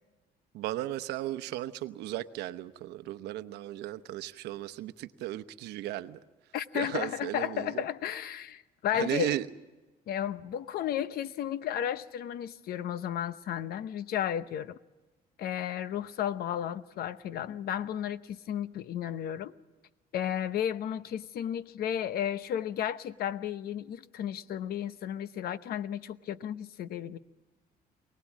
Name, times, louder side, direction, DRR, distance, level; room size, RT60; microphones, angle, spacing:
voice 1, 0.5-6.2 6.7-7.9 8.9-9.5, right 14 dB, 85° right, 0.9 m, -35 dB
voice 2, 6.5-9.3 10.1-14.8 15.4-19.5 20.1-27.2, left 10 dB, 65° left, 0.9 m, -33 dB
23.5 x 19.0 x 7.4 m
cardioid pair, 110°, 17 cm